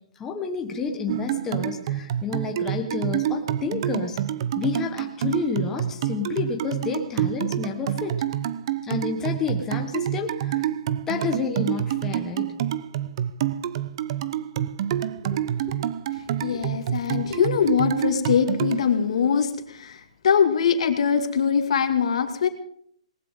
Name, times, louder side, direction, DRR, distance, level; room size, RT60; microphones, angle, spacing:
voice 1, 0.2-4.2 4.6-8.2 8.8-10.7 11.1-12.5 14.9-15.8, left 5 dB, 15° left, 2 dB, 1.3 m, -30 dB
sound 1, 1.1-18.9, right 11 dB, 45° right, 0.8 m, -28 dB
voice 2, 16.4-22.5, left 7 dB, 65° left, 6 dB, 2.2 m, -22 dB
19.0 x 18.0 x 3.8 m, 0.65 s
hypercardioid pair, 155°, 4 cm